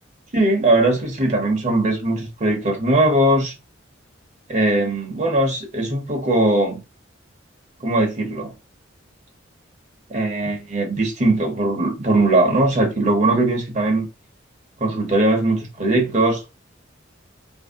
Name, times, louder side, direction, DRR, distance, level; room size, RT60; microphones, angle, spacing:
voice 1, 0.3-3.5 4.5-6.8 7.8-8.5 10.1-14.1 14.8-16.4, right 2 dB, 40° right, 0.8 m, -20 dB
3.1 x 2.7 x 3.5 m
head